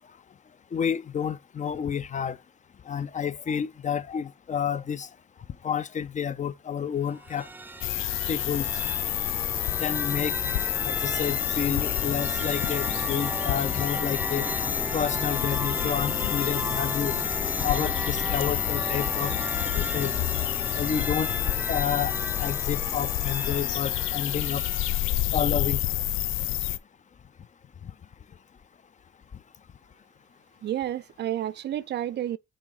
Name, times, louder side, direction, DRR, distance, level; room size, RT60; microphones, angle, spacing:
voice 1, 0.7-2.4 2.9-5.1 5.6-7.5 8.3-8.7 9.8-10.4 10.8-14.5 14.9-17.2 17.6-19.3 19.8-20.1 20.7-21.3 21.7-22.1 22.4-24.6 25.3-25.8, left 8 dB, 40° left, 0.6 m, -30 dB
sound 1, 7.1-25.3, right 1 dB, 10° right, 0.6 m, -35 dB
sound 2, 7.8-26.8, left 15 dB, 85° left, 0.5 m, -28 dB
voice 2, 30.6-32.4, right 12 dB, 60° right, 0.4 m, -30 dB
6.2 x 3.6 x 4.7 m
cardioid pair, 90°, 20 cm